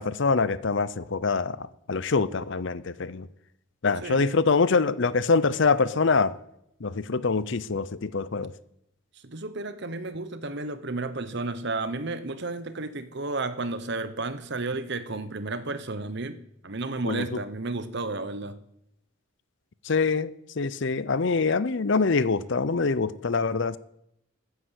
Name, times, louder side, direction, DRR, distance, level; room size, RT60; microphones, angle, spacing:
voice 1, 0.0-3.3 3.8-6.3 6.8-8.5 17.0-17.2 19.8-23.8, left 4 dB, 55° left, 0.6 m, -25 dB
voice 2, 9.1-18.6, right 3 dB, 50° right, 1.1 m, -32 dB
14.0 x 9.7 x 8.2 m
head